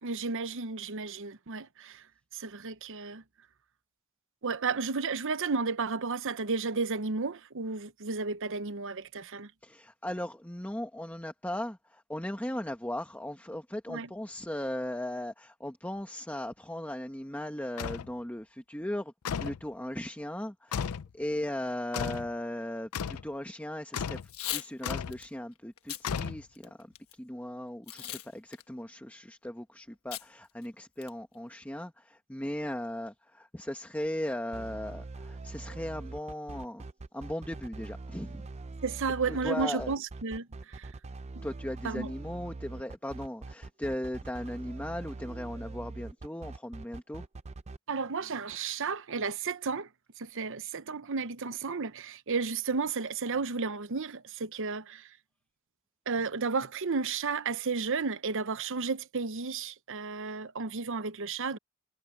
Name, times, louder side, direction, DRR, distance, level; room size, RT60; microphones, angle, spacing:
voice 1, 0.0-2.0 2.3-3.2 4.4-9.5 13.9-14.1 38.8-40.9 41.8-42.1 47.9-49.9 50.2-55.1 56.1-61.6, right 4 dB, 60° right, 0.8 m, -33 dB
voice 2, 9.6-24.2 24.5-36.9 37.1-38.5 39.3-39.9 41.4-47.3, left 1 dB, 5° left, 1.2 m, -37 dB
sound 1, 17.8-18.1 19.2-19.6 20.7-21.1 21.9-22.3 22.9-23.3 23.9-24.3 24.8-25.2 26.0-26.7, left 7 dB, 90° left, 0.5 m, -34 dB
Packing tape duct tape / Tearing, 24.2-24.7 25.1-25.3 25.8-26.0 26.5-27.1 27.9-28.3 28.5-28.6 30.1-30.3 30.6-30.7 31.0-31.3, left 13 dB, 70° left, 1.3 m, -37 dB
sound 2, 34.5-47.8, right 3 dB, 30° right, 0.5 m, -43 dB
head